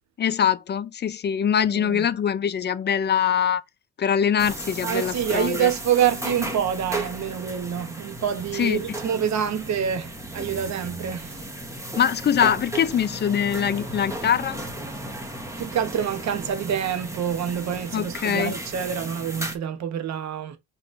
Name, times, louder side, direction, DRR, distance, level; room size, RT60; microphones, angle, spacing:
voice 1, 0.2-3.6 4.0-5.7 8.5-8.8 12.0-14.6 17.9-18.6, left 8 dB, 35° left, 0.5 m, -23 dB
voice 2, 1.7-2.1 4.8-11.4 15.6-20.6, right 9 dB, 65° right, 1.0 m, -26 dB
sound 1, 4.4-19.6, right 1 dB, 10° right, 1.1 m, -35 dB
5.2 x 3.1 x 2.5 m
cardioid pair, 90°, 30 cm